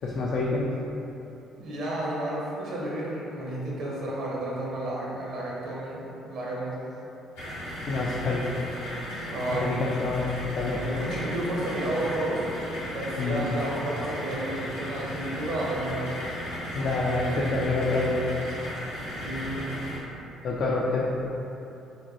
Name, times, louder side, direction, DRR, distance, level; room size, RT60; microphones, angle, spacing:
voice 1, 0.0-0.7 7.9-8.4 9.5-10.8 13.2-13.4 16.7-18.3 20.4-21.0, left 3 dB, 50° left, -4 dB, 0.3 m, -27 dB
voice 2, 1.6-6.8 9.3-9.7 10.7-12.5 12.9-16.2 19.2-19.7, right 1 dB, 60° right, -5 dB, 0.7 m, -31 dB
sound 1, 7.4-20.0, equal, 80° left, 0.8 m, -35 dB
3.8 x 2.2 x 2.7 m, 2.9 s
figure-of-eight pair, 45°, 0 cm